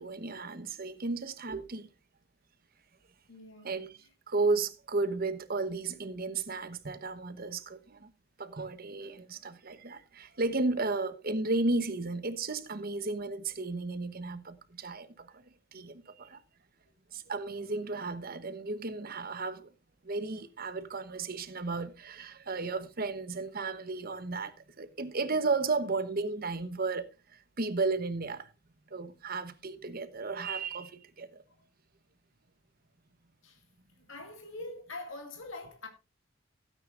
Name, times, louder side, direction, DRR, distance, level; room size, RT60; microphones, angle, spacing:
voice 1, 0.0-1.9 3.6-3.9 4.3-8.1 8.4-16.4 17.1-19.7 20.0-28.5 28.9-31.4, right 3 dB, 50° right, 1.0 m, -34 dB
voice 2, 3.3-3.9 10.7-10.9 16.9-17.1 31.4-31.6 33.4-33.7 33.9-35.9, left 2 dB, 85° left, 2.3 m, -45 dB
16.5 x 9.3 x 2.5 m
head